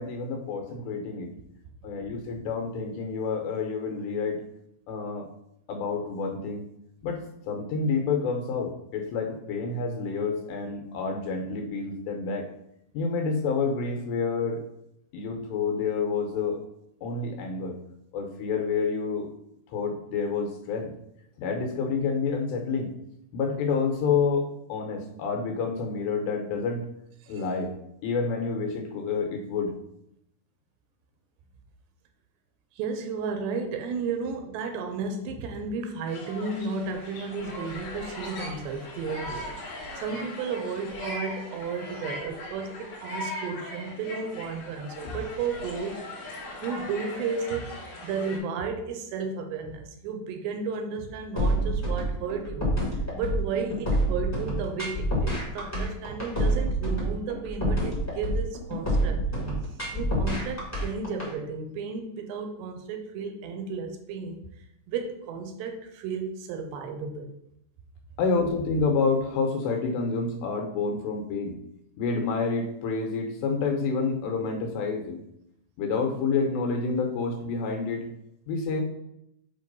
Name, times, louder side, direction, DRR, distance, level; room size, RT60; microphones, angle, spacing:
voice 1, 0.0-1.3 1.8-4.4 4.9-5.3 5.7-6.6 7.0-12.5 12.9-14.6 15.1-16.6 17.0-17.8 18.1-19.3 19.7-20.9 21.4-22.9 23.3-26.9 27.3-27.7 28.0-29.7 45.0-45.1 68.2-71.6 72.0-75.2 75.8-78.1 78.5-78.8, left 4 dB, 80° left, 4 dB, 3.0 m, -28 dB
voice 2, 32.8-39.5 40.0-46.0 46.6-47.7 48.0-52.7 53.1-59.2 59.9-64.4 64.9-67.4, right 5 dB, 80° right, 5 dB, 2.7 m, -33 dB
sound 1, 36.1-48.4, left 1 dB, 50° left, 2.2 m, -39 dB
sound 2, 51.4-61.3, equal, 15° left, 0.6 m, -27 dB
7.4 x 3.0 x 5.3 m, 0.79 s
omnidirectional pair, 5.0 m